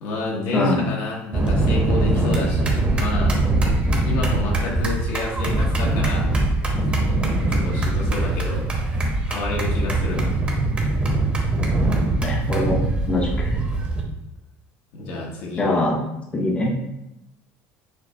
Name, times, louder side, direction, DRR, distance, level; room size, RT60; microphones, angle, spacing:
voice 1, 0.0-3.4 4.0-6.3 7.5-8.7 9.3-10.3 14.9-15.7, left 2 dB, 80° left, -2 dB, 1.2 m, -29 dB
voice 2, 0.5-0.8 12.2-13.6 15.6-16.0 16.3-16.8, left 2 dB, 20° left, -1 dB, 0.7 m, -23 dB
sound 1, 1.3-14.0, right 2 dB, 20° right, 0.9 m, -22 dB
6.4 x 2.3 x 3.1 m, 0.88 s
cardioid pair, 125°, 6 cm